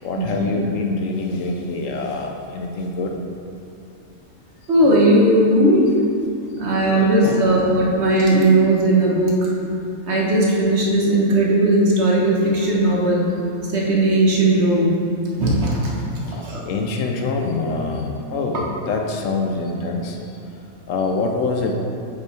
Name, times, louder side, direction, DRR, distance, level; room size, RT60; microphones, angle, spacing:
voice 1, 0.0-3.1 6.9-7.5 16.7-20.1 20.9-21.7, left 3 dB, 70° left, 2 dB, 1.0 m, -25 dB
voice 2, 4.7-5.8 6.6-9.5 10.0-13.2 13.7-14.9 15.4-15.7 16.2-16.6, right 1 dB, 55° right, -4 dB, 1.3 m, -17 dB
8.2 x 5.4 x 3.2 m, 2.7 s
omnidirectional pair, 1.5 m